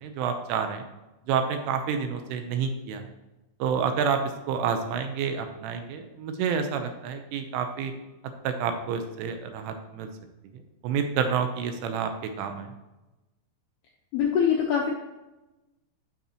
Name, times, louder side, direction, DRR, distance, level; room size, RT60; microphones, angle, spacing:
voice 1, 0.0-0.8 1.3-3.1 3.6-4.2 4.5-7.9 8.4-10.1 10.8-12.1 12.4-12.7, right 6 dB, 80° right, 6 dB, 3.2 m, -28 dB
voice 2, 14.1-14.9, left 7 dB, 80° left, -2 dB, 2.3 m, -23 dB
12.5 x 6.5 x 2.9 m, 1.0 s
omnidirectional pair, 5.8 m